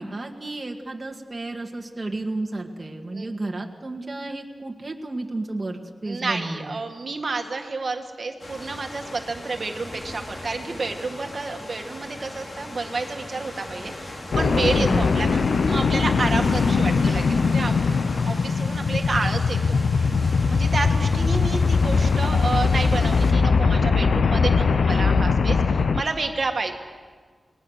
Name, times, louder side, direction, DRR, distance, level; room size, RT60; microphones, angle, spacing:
voice 1, 0.0-6.8 14.8-15.1, right 2 dB, 25° right, 1 dB, 1.9 m, -32 dB
voice 2, 6.0-18.0 18.2-19.8 20.5-26.7, right 3 dB, 45° right, 4 dB, 1.8 m, -30 dB
sound 1, 8.4-23.3, left 1 dB, 40° left, 3.1 m, -38 dB
sound 2, 14.3-26.0, left 5 dB, 70° left, 0.8 m, -21 dB
29.0 x 20.5 x 6.5 m, 1.5 s
wide cardioid pair, 135°, 0 cm